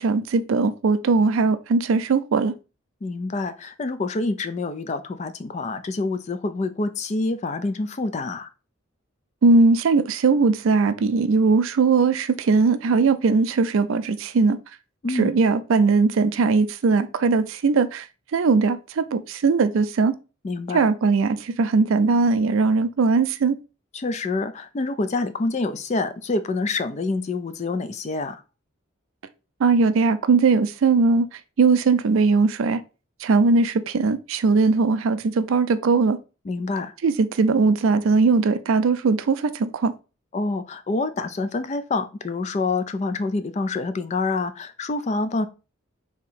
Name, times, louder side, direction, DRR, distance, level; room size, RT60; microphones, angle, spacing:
voice 1, 0.0-2.5 9.4-14.6 15.1-18.0 18.3-20.1 20.7-23.6 29.6-31.3 31.6-32.8 33.2-36.2 37.0-39.9, right 4 dB, 70° right, 0.4 m, -19 dB
voice 2, 3.0-8.5 15.0-15.4 20.4-20.9 23.9-28.4 36.5-36.9 40.3-45.5, left 3 dB, 30° left, 0.3 m, -27 dB
3.6 x 2.8 x 4.1 m
head